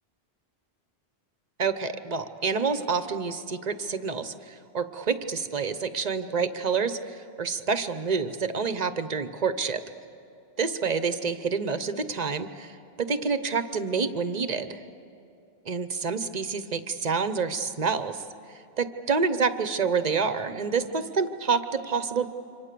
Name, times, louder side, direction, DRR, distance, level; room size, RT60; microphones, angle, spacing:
voice 1, 1.6-9.8 10.6-14.8 15.6-18.2 18.5-22.3, right 5 dB, 45° right, 10 dB, 1.0 m, -28 dB
27.5 x 25.0 x 6.8 m, 2.7 s
omnidirectional pair, 1.1 m